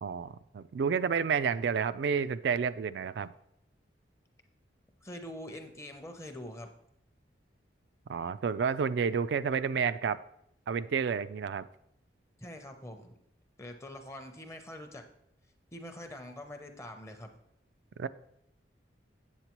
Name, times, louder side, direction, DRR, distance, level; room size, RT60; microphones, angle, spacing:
voice 1, 0.0-3.3 8.1-10.2 10.7-11.7 18.0-18.1, right 6 dB, 70° right, 14 dB, 0.3 m, -30 dB
voice 2, 5.0-6.7 12.4-13.1 13.6-15.0 15.7-17.3, left 1 dB, 15° left, 5 dB, 0.6 m, -44 dB
8.1 x 7.9 x 3.0 m, 0.77 s
head